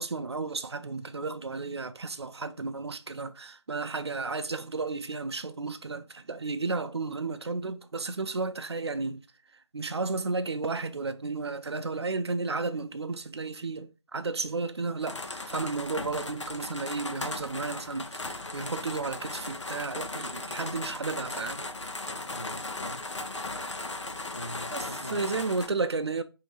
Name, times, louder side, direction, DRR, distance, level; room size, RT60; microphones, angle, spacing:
voice 1, 0.0-9.2 9.7-21.7 24.7-26.2, right 3 dB, 65° right, 0.5 m, -33 dB
sound 1, 15.0-25.7, left 2 dB, 85° left, 0.8 m, -37 dB
voice 2, 22.1-23.1 24.3-25.6, equal, 40° left, 0.5 m, -43 dB
3.8 x 2.8 x 4.4 m
figure-of-eight pair, 180°, 15 cm